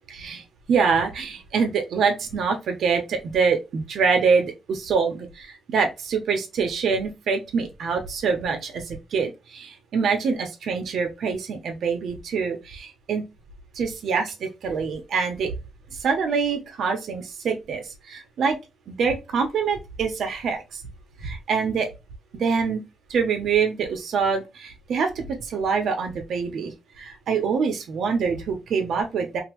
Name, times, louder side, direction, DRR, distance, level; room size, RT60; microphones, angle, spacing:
voice 1, 0.1-0.4 0.7-13.2 13.8-15.5 16.0-18.6 18.9-20.6 21.2-21.9 22.3-22.8 23.1-26.7 27.0-29.4, right 5 dB, 65° right, 1.1 m, -25 dB
3.1 x 2.9 x 3.0 m
cardioid pair, 130°, 0 cm